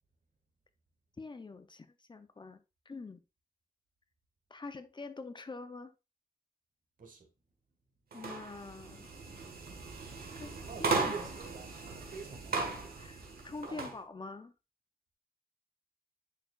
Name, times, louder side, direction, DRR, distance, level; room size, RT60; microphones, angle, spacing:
voice 1, 1.2-3.2 4.5-5.9 8.1-9.1 10.4-11.3 13.0-14.5, left 3 dB, 30° left, 0.6 m, -45 dB
sound 1, 8.1-14.0, right 3 dB, 90° right, 1.5 m, -37 dB
voice 2, 10.6-13.1 13.7-13.9, right 5 dB, 60° right, 1.7 m, -47 dB
10.0 x 4.6 x 2.4 m
wide cardioid pair, 140°, 15 cm